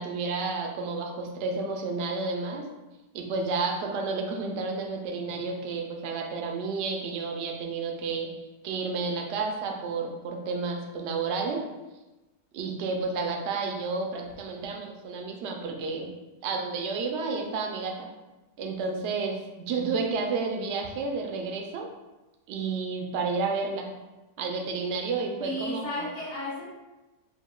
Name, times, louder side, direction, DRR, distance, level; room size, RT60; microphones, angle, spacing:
voice 1, 0.0-2.7 3.1-8.3 8.6-11.6 12.5-16.1 16.4-18.1 18.6-21.9 22.5-23.9 24.4-26.1, right 4 dB, 65° right, 1 dB, 0.7 m, -31 dB
voice 2, 25.4-26.7, left 1 dB, 60° left, -11 dB, 1.8 m, -33 dB
4.9 x 2.1 x 2.3 m, 1.1 s
omnidirectional pair, 1.6 m